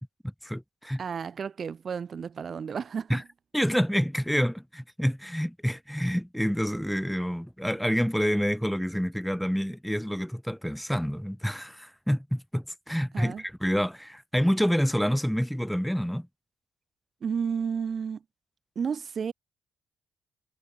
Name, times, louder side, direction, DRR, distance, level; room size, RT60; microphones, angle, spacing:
voice 1, 0.4-1.0 3.1-3.2 3.5-16.3, equal, ahead, 1.4 m, -28 dB
voice 2, 1.0-3.2 13.1-13.4 17.2-18.2 18.8-19.3, right 6 dB, 50° right, 0.7 m, -32 dB
hypercardioid pair, 45°, 0 cm